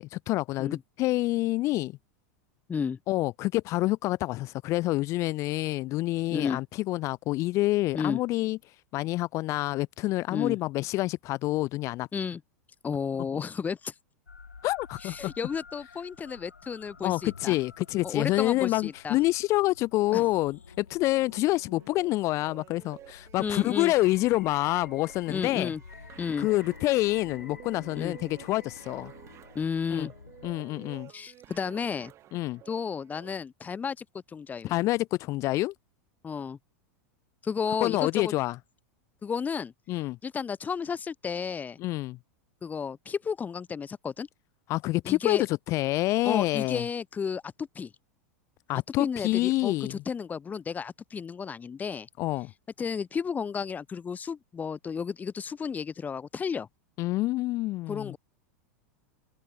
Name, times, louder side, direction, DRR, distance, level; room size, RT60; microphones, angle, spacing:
voice 1, 0.0-1.9 3.1-8.6 8.9-12.1 13.3-13.4 14.6-15.3 17.0-25.7 26.3-29.1 29.9-30.1 30.4-31.1 32.3-32.6 34.6-35.7 37.8-38.6 39.9-40.2 41.8-42.2 44.7-45.4 45.7-46.8 48.7-50.0 52.2-52.5 57.0-58.2, left 18 dB, 40° left, 0.4 m, -27 dB
voice 2, 6.3-6.6 7.9-8.2 10.3-10.6 12.1-12.4 12.8-13.9 15.0-17.6 18.0-19.2 20.1-20.3 23.4-23.9 25.3-25.8 26.2-26.5 28.0-28.1 29.5-30.1 31.1-32.1 32.7-34.0 34.3-34.7 36.2-36.6 37.4-38.3 39.2-39.7 40.2-41.8 42.6-44.3 45.0-45.4 46.2-47.9 49.0-52.1 52.8-56.7 57.9-58.2, left 6 dB, 20° left, 2.6 m, -32 dB
sound 1, 14.3-30.6, left 5 dB, 90° left, 2.3 m, -50 dB
sound 2, 21.7-33.3, right 13 dB, 35° right, 7.0 m, -51 dB
hypercardioid pair, 90°, 8 cm